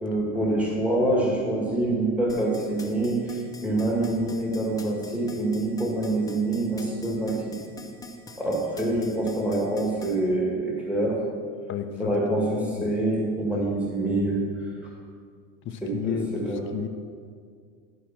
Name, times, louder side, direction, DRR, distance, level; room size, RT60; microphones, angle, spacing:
voice 1, 0.0-7.6 8.4-11.2 12.0-14.5 15.8-16.1 16.4-16.6, right 2 dB, 5° right, -4 dB, 2.1 m, -26 dB
sound 1, 2.3-10.2, left 3 dB, 10° left, 1.1 m, -44 dB
voice 2, 11.7-12.9 15.6-16.3 16.7-16.9, left 8 dB, 40° left, 7 dB, 0.8 m, -31 dB
12.0 x 5.0 x 6.0 m, 2.1 s
supercardioid pair, 115°, 31 cm